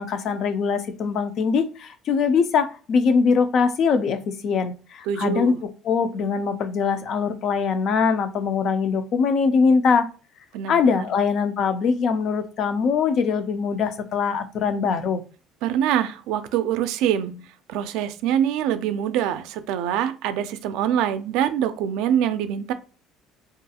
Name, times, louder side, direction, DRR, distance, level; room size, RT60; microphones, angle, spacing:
voice 1, 0.0-10.1 10.7-15.2, left 5 dB, 45° left, 0.3 m, -22 dB
voice 2, 5.1-5.6 10.5-10.8 15.6-17.4 17.7-22.7, right 10 dB, 75° right, 0.3 m, -24 dB
2.4 x 2.3 x 2.8 m
cardioid pair, 145°, 0 cm